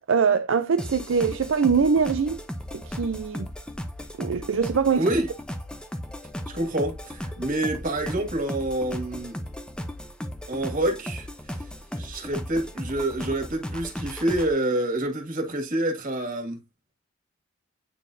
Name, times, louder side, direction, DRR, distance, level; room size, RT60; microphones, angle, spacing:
voice 1, 0.1-2.4 2.8-3.5 4.2-5.0, right 6 dB, 70° right, 0.5 m, -23 dB
sound 1, 0.8-14.5, equal, 5° left, 0.8 m, -36 dB
voice 2, 5.0-5.3 6.5-9.4 10.5-11.3 11.9-16.6, right 1 dB, 40° right, 2.1 m, -27 dB
9.2 x 4.2 x 2.6 m
head